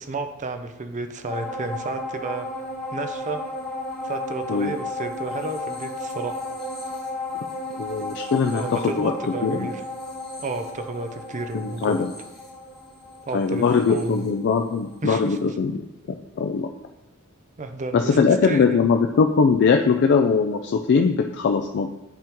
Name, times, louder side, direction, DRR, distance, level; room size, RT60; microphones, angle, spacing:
voice 1, 0.0-2.5 2.9-3.4 4.0-6.4 8.5-9.8 10.4-12.0 13.3-14.3 15.0-15.4 17.6-18.9, right 3 dB, 35° right, 7 dB, 0.5 m, -32 dB
sound 1, 1.3-14.9 15.3-15.4, left 2 dB, ahead, 1.5 m, -34 dB
voice 2, 7.8-9.1 9.4-9.7 11.5-12.1 13.3-15.9 16.4-16.7 17.9-21.9, left 5 dB, 55° left, 4 dB, 0.3 m, -21 dB
10.5 x 3.6 x 3.0 m, 0.95 s
head